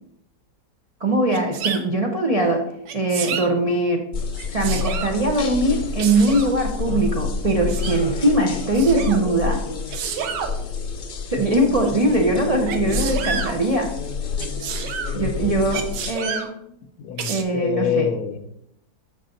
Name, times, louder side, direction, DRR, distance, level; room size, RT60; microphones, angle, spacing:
voice 1, 1.0-2.6 2.9-4.0 4.5-9.6 11.3-13.9 15.1-16.5 17.3-18.1, right 1 dB, 65° right, 1 dB, 0.3 m, -21 dB
Sneeze, 1.3-1.8 2.9-3.5 4.3-5.2 6.0-6.5 7.5-8.0 8.7-9.2 9.9-10.5 12.7-13.5 14.4-15.1 15.7-16.5 17.2-17.4, right 7 dB, 80° right, 1.4 m, -29 dB
sound 1, 4.1-16.1, left 5 dB, 50° left, 0.6 m, -29 dB
voice 2, 15.1-15.6 16.3-16.4 17.0-18.4, left 8 dB, 70° left, 9 dB, 1.0 m, -26 dB
6.8 x 5.7 x 3.9 m, 0.78 s
omnidirectional pair, 1.8 m